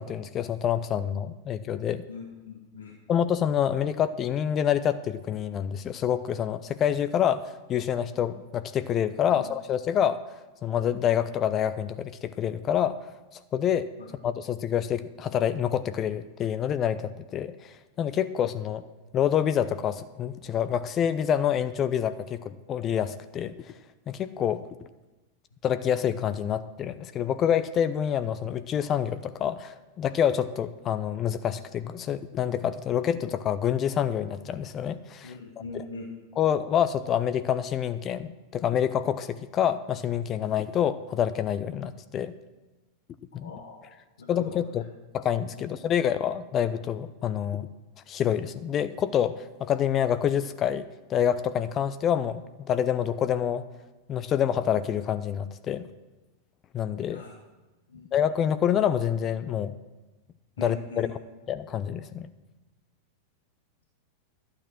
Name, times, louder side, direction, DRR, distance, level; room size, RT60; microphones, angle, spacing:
voice 1, 0.0-2.0 3.1-7.4 7.7-10.2 10.6-13.0 13.5-13.9 14.2-18.8 19.1-23.6 24.1-24.6 25.6-35.4 35.7-35.9 36.4-42.3 43.3-43.5 44.3-44.8 45.1-47.7 48.1-50.8 51.1-52.4 52.7-53.6 54.1-55.9 56.7-57.2 58.1-59.7 60.6-61.2 61.5-62.3, left 9 dB, 30° left, 12 dB, 0.5 m, -27 dB
voice 2, 2.1-2.9 9.3-9.4 35.2-36.1 43.4-43.8 44.2-44.5 45.6-45.7 57.1-57.3 57.9-58.1 60.6-61.0, left 3 dB, 65° left, 0 dB, 1.6 m, -41 dB
12.0 x 8.8 x 6.0 m, 1.1 s
figure-of-eight pair, 90°, 0 cm